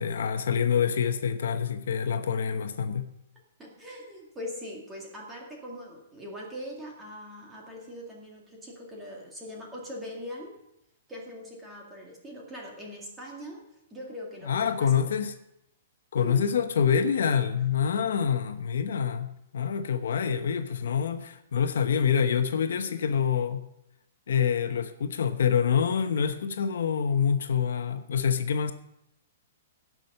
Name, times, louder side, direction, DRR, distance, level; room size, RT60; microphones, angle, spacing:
voice 1, 0.0-3.1 14.4-15.3 16.1-23.6 24.3-28.7, left 7 dB, 70° left, 0.9 m, -26 dB
voice 2, 3.6-10.5 11.1-13.6 13.9-15.1 16.2-16.4, left 1 dB, 10° right, 2.1 m, -41 dB
17.5 x 6.1 x 5.5 m
hypercardioid pair, 175°, 0 cm